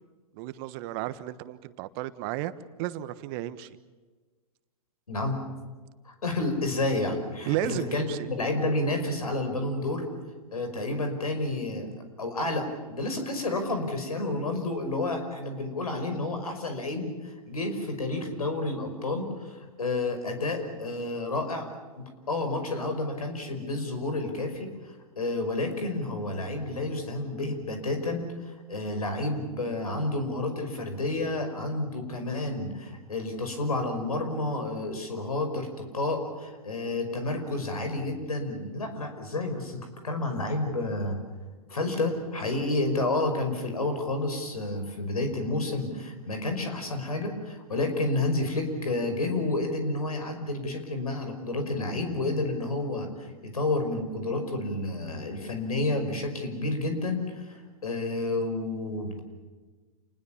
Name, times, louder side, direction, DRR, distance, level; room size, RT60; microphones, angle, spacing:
voice 1, 0.3-2.5 2.8-3.7 7.5-8.3, right 14 dB, 40° right, 13 dB, 1.2 m, -33 dB
voice 2, 5.1-5.4 6.0-10.1 10.5-11.9 12.2-21.7 22.0-41.2 41.7-59.2, left 2 dB, 85° left, 7 dB, 5.7 m, -30 dB
28.5 x 20.5 x 7.3 m, 1.3 s
hypercardioid pair, 115°, 18 cm